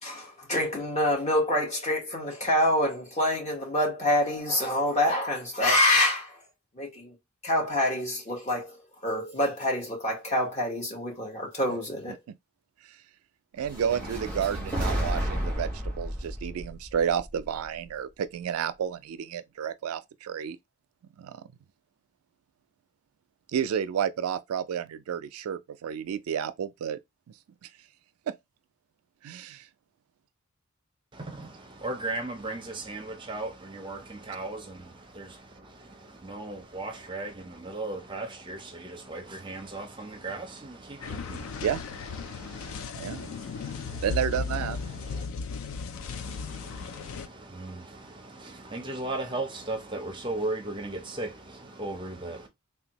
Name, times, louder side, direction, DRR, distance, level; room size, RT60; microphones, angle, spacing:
voice 1, 0.0-6.4 6.7-7.1 7.4-8.8 9.0-12.2, left 1 dB, 30° left, 1.2 m, -26 dB
voice 2, 13.5-20.6 21.2-21.5 23.5-27.0 27.6-27.7 28.3-28.4 29.2-29.7 41.6-41.8 43.0-43.3 44.0-44.8, right 8 dB, 85° right, 0.3 m, -31 dB
sound 1, 13.6-17.9, equal, 5° left, 1.2 m, -32 dB
voice 3, 31.1-52.5, right 2 dB, 20° right, 0.6 m, -38 dB
sound 2, 41.0-47.3, left 4 dB, 70° left, 0.3 m, -36 dB
3.4 x 2.3 x 2.8 m
head